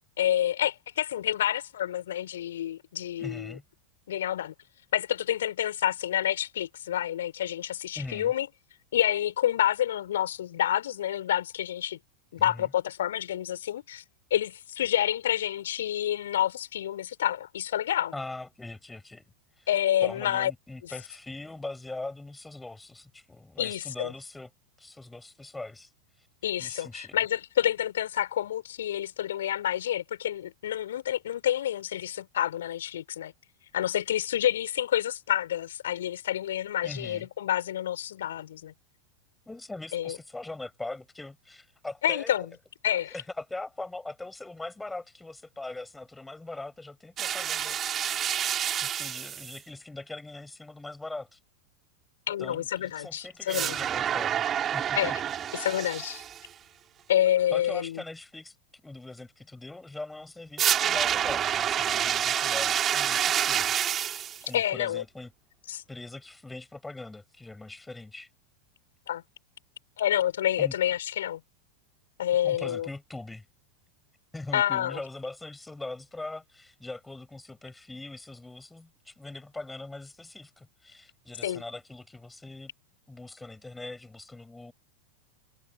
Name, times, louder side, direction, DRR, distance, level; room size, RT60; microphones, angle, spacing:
voice 1, 0.2-3.6 4.1-4.5 4.9-8.5 8.9-12.0 12.3-14.0 14.3-18.1 19.7-20.5 20.8-20.9 23.6-24.1 26.4-33.3 33.7-38.7 39.9-40.2 42.0-42.4 42.8-43.1 52.3-53.7 54.9-55.1 55.5-56.2 57.1-58.0 64.5-65.0 65.7-65.8 69.1-69.2 70.0-71.4 72.2-72.9 74.5-75.0 81.4-81.6, left 11 dB, 60° left, 4.9 m, -28 dB
voice 2, 3.2-3.6 7.9-8.3 12.4-12.7 18.1-19.2 19.6-19.7 20.0-24.5 24.8-25.9 26.2-26.3 26.6-27.2 36.8-37.3 39.5-42.5 43.0-47.8 48.8-51.4 52.4-54.4 54.7-55.2 57.5-58.6 58.8-63.9 64.4-65.3 65.9-68.3 70.6-70.7 72.4-73.5 74.3-82.7 83.1-84.7, left 2 dB, 5° left, 5.3 m, -41 dB
sound 1, 47.2-49.6 53.5-56.4 60.6-64.4, right 9 dB, 25° right, 3.2 m, -28 dB
figure-of-eight pair, 90°, 0 cm